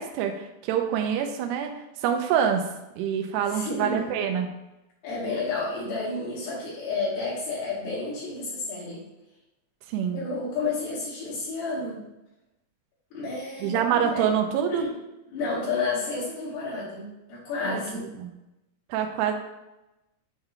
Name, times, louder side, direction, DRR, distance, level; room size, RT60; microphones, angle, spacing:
voice 1, 0.0-2.7 3.0-4.5 9.9-10.2 13.6-14.8 17.6-18.3 18.9-19.3, right 8 dB, 85° right, 4 dB, 2.3 m, -26 dB
voice 2, 3.5-4.1 5.0-9.0 10.1-12.0 13.1-14.3 14.7-15.0 15.3-18.1, left 3 dB, 60° left, -8 dB, 3.8 m, -31 dB
8.3 x 3.7 x 3.4 m, 0.95 s
omnidirectional pair, 5.5 m